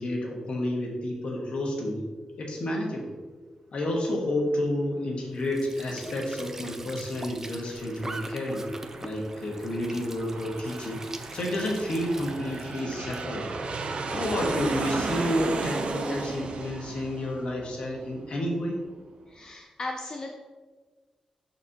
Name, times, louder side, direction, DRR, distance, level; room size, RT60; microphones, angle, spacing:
voice 1, 0.0-2.1 2.4-3.1 3.7-8.7 9.0-11.1 11.3-13.5 14.1-18.8, left 1 dB, 60° left, -1 dB, 1.3 m, -30 dB
Squeak / Sink (filling or washing) / Trickle dribble, 5.3-13.3, right 2 dB, 20° right, 0.5 m, -43 dB
Aircraft, 7.4-18.6, right 3 dB, 65° right, 0.6 m, -35 dB
voice 2, 19.3-20.4, left 2 dB, 35° left, 2 dB, 0.5 m, -37 dB
12.0 x 4.2 x 2.8 m, 1.4 s
wide cardioid pair, 145°, 2 cm